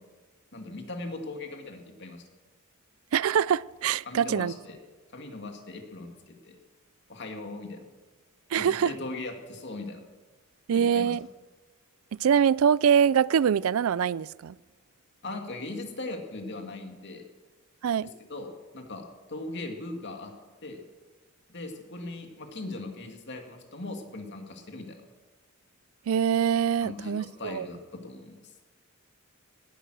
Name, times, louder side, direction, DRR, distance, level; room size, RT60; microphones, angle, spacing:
voice 1, 0.5-2.2 4.1-4.8 5.1-6.6 7.1-7.8 8.6-10.0 10.7-11.2 15.2-17.2 18.3-20.3 20.6-20.8 21.5-25.0 26.8-28.4, left 2 dB, 55° left, 2.3 m, -39 dB
voice 2, 3.1-4.5 8.5-8.9 10.7-11.3 12.1-14.5 17.8-18.1 26.1-27.7, right 8 dB, 75° right, 0.4 m, -24 dB
18.0 x 11.5 x 6.4 m
head